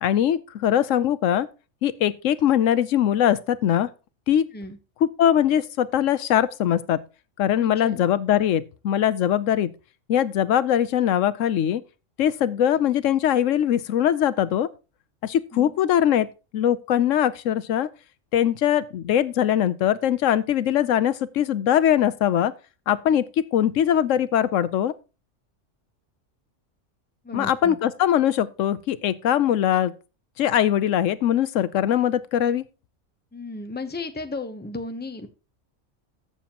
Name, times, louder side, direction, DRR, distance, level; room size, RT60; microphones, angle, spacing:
voice 1, 0.0-1.5 1.8-3.9 4.3-4.4 5.0-7.0 7.4-9.7 10.1-11.8 12.2-14.7 15.2-16.3 16.5-17.9 18.3-22.5 22.9-23.2 23.5-24.9 27.3-29.9 30.4-32.6, left 10 dB, 85° left, 1.0 m, -21 dB
voice 2, 7.6-8.1 15.5-15.7 27.2-27.8 33.3-35.3, left 3 dB, 10° left, 0.8 m, -34 dB
14.5 x 7.1 x 2.9 m
omnidirectional pair, 1.3 m